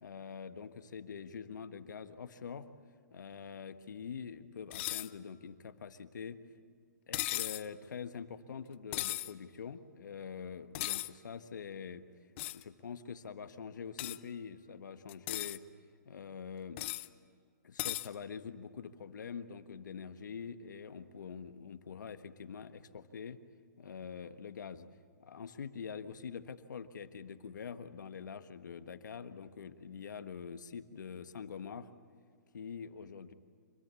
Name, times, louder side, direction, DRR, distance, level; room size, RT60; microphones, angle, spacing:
voice 1, 0.0-2.7 3.1-6.4 7.1-12.0 12.5-15.6 16.0-16.8 17.6-23.4 23.8-24.9 25.2-31.9 32.5-33.3, left 6 dB, 80° left, 10 dB, 1.5 m, -45 dB
sound 1, 4.7-5.1 7.1-7.7 8.9-9.3 10.7-11.1 12.4-12.6 14.0-14.2 15.1-15.6 16.8-17.1 17.8-18.1, left 17 dB, 40° left, 0.7 m, -36 dB
26.5 x 21.5 x 8.4 m, 2.1 s
hypercardioid pair, 145°, 10 cm